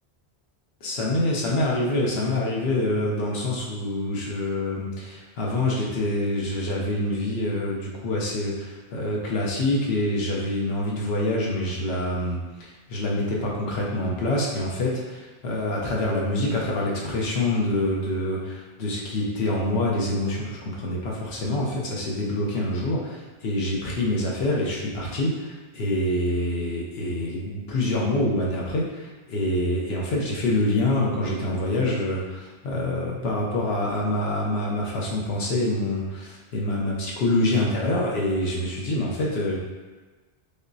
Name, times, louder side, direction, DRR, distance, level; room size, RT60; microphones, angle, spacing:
voice 1, 0.8-39.6, left 1 dB, 70° left, -3 dB, 0.9 m, -26 dB
5.2 x 2.0 x 2.6 m, 1.3 s
omnidirectional pair, 1.1 m